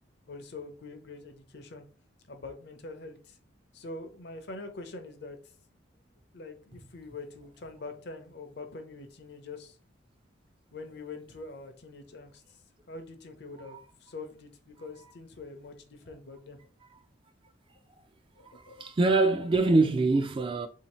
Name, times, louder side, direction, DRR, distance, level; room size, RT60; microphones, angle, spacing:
voice 1, 0.3-1.9 2.3-3.4 3.7-5.4 6.3-9.8 10.7-12.6 12.9-16.6 18.4-18.9, left 3 dB, 60° left, 0.6 m, -44 dB
voice 2, 18.4-20.7, right 3 dB, 25° right, 0.3 m, -24 dB
3.8 x 2.8 x 3.0 m
head